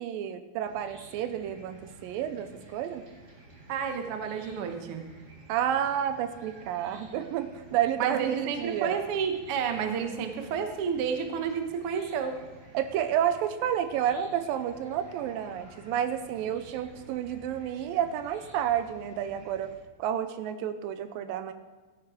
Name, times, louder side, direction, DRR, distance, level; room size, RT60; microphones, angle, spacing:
voice 1, 0.0-3.0 5.5-9.0 12.7-19.7 20.0-21.5, right 10 dB, 90° right, 11 dB, 2.4 m, -30 dB
Chicken rooster / Cricket, 0.6-19.7, right 2 dB, 35° right, 1.8 m, -52 dB
voice 2, 3.7-5.1 8.0-12.3, right 6 dB, 65° right, 6 dB, 1.4 m, -31 dB
15.0 x 8.8 x 4.9 m, 1.3 s
omnidirectional pair, 4.0 m